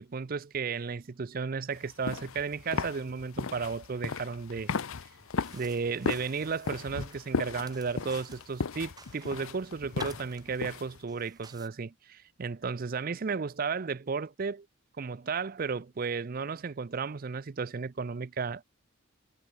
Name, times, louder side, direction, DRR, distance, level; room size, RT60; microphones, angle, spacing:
voice 1, 0.0-4.7 5.5-14.7 15.0-18.7, right 5 dB, 40° right, 0.5 m, -34 dB
sound 1, 1.8-11.0, left 5 dB, 70° left, 0.7 m, -36 dB
sound 2, 5.2-11.7, right 4 dB, 20° right, 4.1 m, -53 dB
head